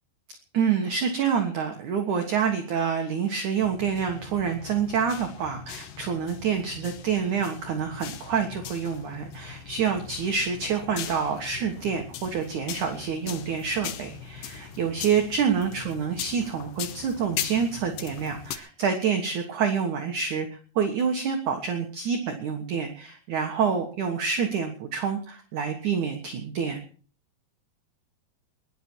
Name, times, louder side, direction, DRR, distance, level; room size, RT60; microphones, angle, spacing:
voice 1, 0.5-20.5 20.8-26.8, right 6 dB, 60° right, 4 dB, 2.4 m, -27 dB
sound 1, 3.6-18.6, left 9 dB, 65° left, 2.4 m, -40 dB
21.5 x 11.5 x 4.6 m, 0.43 s
omnidirectional pair, 4.9 m